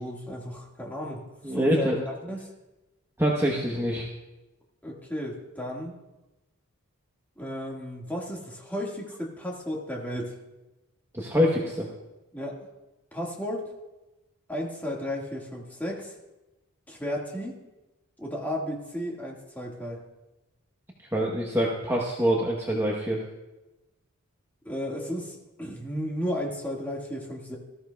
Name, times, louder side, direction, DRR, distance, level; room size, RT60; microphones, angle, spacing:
voice 1, 0.0-2.5 4.8-6.0 7.4-10.4 12.3-12.7 13.1-13.6 14.5-16.1 16.9-17.5 18.2-20.0 24.7-27.6, equal, 10° left, -2 dB, 1.7 m, -34 dB
voice 2, 1.4-2.0 3.2-4.1 11.1-11.9 21.1-23.2, equal, 10° right, -2 dB, 1.0 m, -25 dB
19.0 x 13.5 x 2.3 m, 1.0 s
head